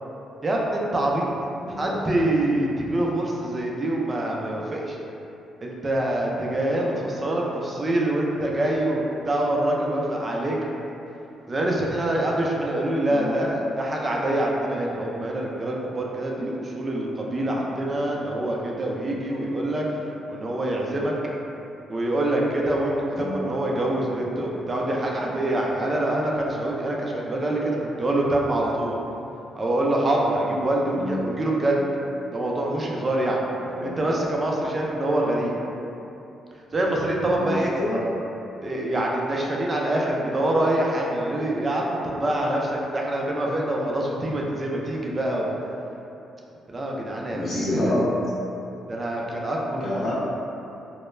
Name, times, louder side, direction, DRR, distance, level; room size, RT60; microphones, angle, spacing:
voice 1, 0.4-1.3 1.8-5.0 5.6-10.6 11.5-20.0 20.3-21.1 21.9-28.9 29.6-31.8 32.3-33.4 33.8-35.5 36.7-37.7 38.6-45.5 46.7-47.7 48.9-50.1, right 1 dB, 30° right, -2 dB, 0.4 m, -25 dB
voice 2, 1.6-2.0 6.9-7.2 13.1-13.5 23.2-23.6 30.9-31.3 33.6-34.0 37.3-38.1 47.3-48.1 49.8-50.1, left 1 dB, 45° left, -6 dB, 0.3 m, -28 dB
2.2 x 2.0 x 3.1 m, 2.9 s
cardioid pair, 90°, 0 cm